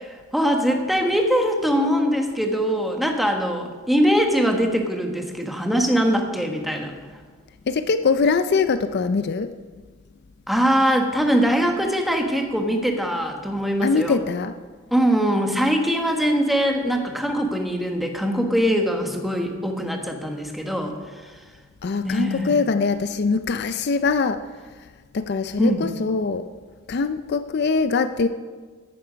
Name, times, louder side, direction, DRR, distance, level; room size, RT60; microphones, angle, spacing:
voice 1, 0.0-6.9 10.5-14.2 14.9-21.3 22.0-22.6 25.6-25.9, equal, ahead, 3 dB, 1.3 m, -22 dB
voice 2, 7.7-9.5 13.8-14.5 21.8-24.4 24.8-24.9 25.1-26.5 26.9-28.3, left 4 dB, 50° left, 11 dB, 0.4 m, -22 dB
14.5 x 10.5 x 5.1 m, 1.5 s
head